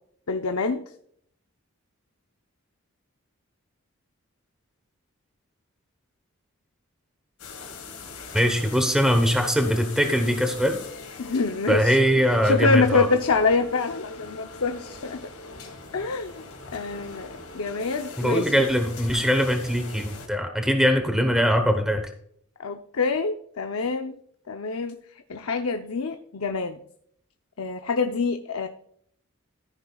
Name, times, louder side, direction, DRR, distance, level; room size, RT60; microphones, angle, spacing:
voice 1, 0.3-0.8 11.2-12.0 12.4-15.3 15.9-16.4 16.7-18.5 22.6-24.2 24.5-25.0 25.3-26.8 27.6-28.7, left 4 dB, 75° left, 6 dB, 0.7 m, -26 dB
sound 1, 7.4-20.3, left 3 dB, 90° left, 2.9 m, -41 dB
voice 2, 8.3-10.8 11.7-13.1 18.2-22.1, equal, 5° right, 5 dB, 1.0 m, -22 dB
14.0 x 10.0 x 2.4 m, 0.65 s
head